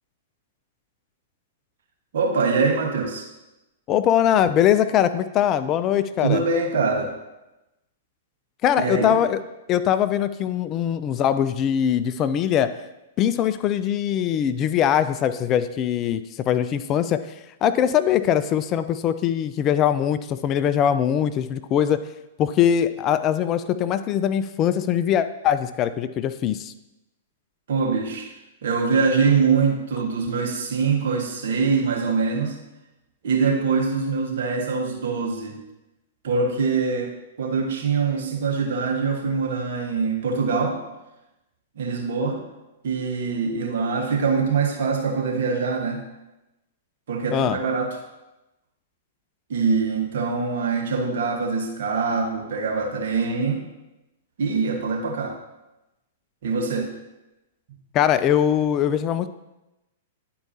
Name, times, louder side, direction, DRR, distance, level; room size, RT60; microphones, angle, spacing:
voice 1, 2.1-3.3 6.2-7.1 8.8-9.2 27.7-28.3 28.6-32.6 33.2-35.6 36.2-37.1 37.4-40.8 41.7-42.4 42.8-46.0 47.1-48.0 49.5-53.6 54.4-55.3 56.4-56.9, right 5 dB, 65° right, 1 dB, 1.4 m, -23 dB
voice 2, 3.9-6.4 8.6-9.4 9.7-12.7 13.2-17.2 17.6-22.0 22.4-26.7 47.3-47.6 57.9-59.3, left 9 dB, 35° left, 12 dB, 0.3 m, -22 dB
10.5 x 4.6 x 2.8 m, 0.98 s
hypercardioid pair, 110°, 0 cm